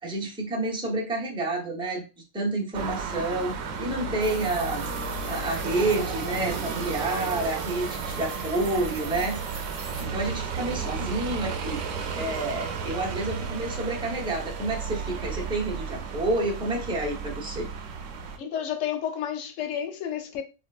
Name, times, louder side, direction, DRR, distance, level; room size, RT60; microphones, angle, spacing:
voice 1, 0.0-2.1 2.3-4.8 5.3-9.4 10.0-11.8 12.1-17.7, right 2 dB, 5° right, 0.4 m, -29 dB
sound 1, 2.7-18.4, right 5 dB, 85° right, 1.0 m, -33 dB
sound 2, 4.2-10.0, right 3 dB, 50° right, 0.8 m, -43 dB
voice 2, 18.4-20.4, left 9 dB, 75° left, 0.9 m, -31 dB
3.7 x 2.3 x 2.4 m
omnidirectional pair, 1.4 m